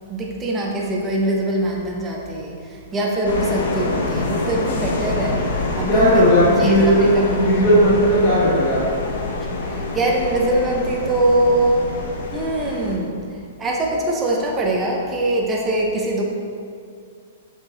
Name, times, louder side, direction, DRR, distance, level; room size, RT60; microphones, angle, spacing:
voice 1, 0.1-5.4 5.7-6.8 7.1-7.2 9.7-12.0 12.3-16.2, right 1 dB, 10° right, -2 dB, 0.6 m, -22 dB
sound 1, 3.2-13.0, left 2 dB, 60° left, 0.9 m, -26 dB
voice 2, 5.9-8.8, equal, 25° left, -10 dB, 1.4 m, -16 dB
5.9 x 5.3 x 3.6 m, 2.3 s
hypercardioid pair, 170°, 0 cm